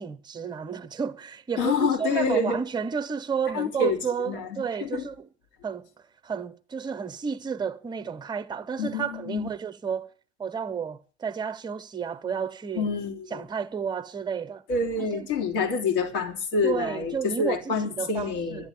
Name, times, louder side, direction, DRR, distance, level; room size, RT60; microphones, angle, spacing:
voice 1, 0.0-5.3 5.6-5.9 6.2-10.1 10.4-12.9 13.3-14.6 15.1-15.3 16.6-18.7, right 6 dB, 15° right, 0.9 m, -31 dB
voice 2, 1.6-2.6 3.5-4.0 4.3-5.1 8.8-9.5 12.8-13.4 14.7-18.7, left 4 dB, 55° left, 3.5 m, -27 dB
11.5 x 11.0 x 9.8 m
figure-of-eight pair, 90°, 33 cm